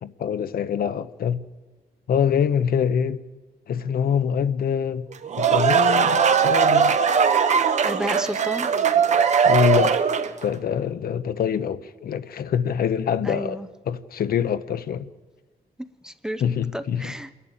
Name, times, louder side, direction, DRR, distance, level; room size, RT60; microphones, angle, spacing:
voice 1, 0.0-1.4 2.1-3.2 3.7-5.1 5.4-7.0 9.4-10.0 10.4-13.6 13.9-15.1 16.4-17.1, left 8 dB, 70° left, 0.9 m, -24 dB
sound 1, 5.1-10.4, right 6 dB, 45° right, 1.0 m, -19 dB
voice 2, 7.8-8.7 13.2-13.7 16.0-16.4 16.7-17.4, equal, 5° right, 0.6 m, -31 dB
28.0 x 11.5 x 8.9 m
wide cardioid pair, 170°, 16 cm